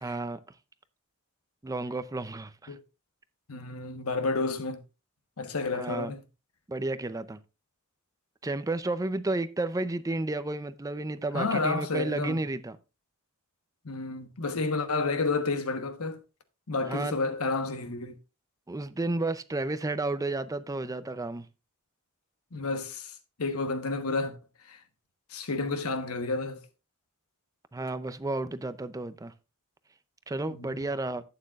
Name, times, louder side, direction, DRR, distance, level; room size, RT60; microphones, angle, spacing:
voice 1, 0.0-0.4 1.6-2.8 5.7-6.1 6.7-7.4 8.4-12.8 16.9-17.2 18.7-21.5 27.7-29.3 30.3-31.2, right 2 dB, 15° right, 0.5 m, -32 dB
voice 2, 3.5-4.8 5.4-6.2 11.3-12.4 13.8-16.2 16.7-18.2 22.5-24.4 24.7-24.8 25.3-26.6 30.5-30.7, left 3 dB, 75° left, 1.1 m, -30 dB
11.5 x 8.8 x 2.4 m
head